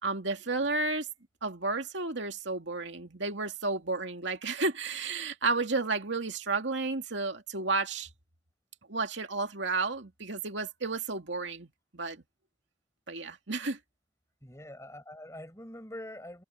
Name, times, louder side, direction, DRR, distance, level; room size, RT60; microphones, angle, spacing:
voice 1, 0.0-1.1 1.4-8.1 8.9-12.2 13.1-13.8, right 3 dB, 80° right, 2.4 m, -32 dB
voice 2, 14.4-16.4, left 1 dB, 15° left, 5.9 m, -44 dB
head